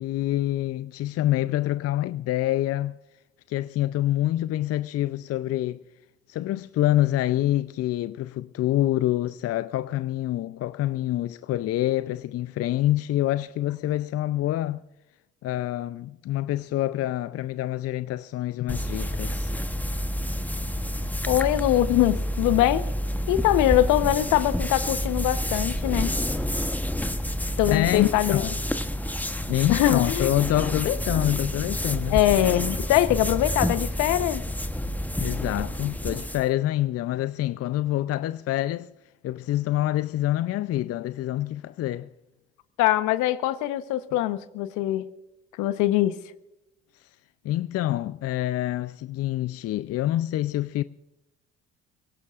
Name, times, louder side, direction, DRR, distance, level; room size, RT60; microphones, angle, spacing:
voice 1, 0.0-2.9 3.5-5.8 6.3-14.8 15.4-19.5 27.7-28.6 29.5-32.2 35.2-38.9 39.2-42.1 47.0-47.1 47.4-50.8, left 14 dB, 50° left, 0.5 m, -26 dB
sound 1, 18.7-36.5, equal, 5° left, 1.0 m, -29 dB
voice 2, 21.3-22.9 23.3-26.2 27.6-28.4 29.7-30.3 30.9-31.0 32.1-34.5 42.8-45.1 45.6-46.2, left 14 dB, 70° left, 1.0 m, -22 dB
24.5 x 17.0 x 2.5 m
hypercardioid pair, 60°, 31 cm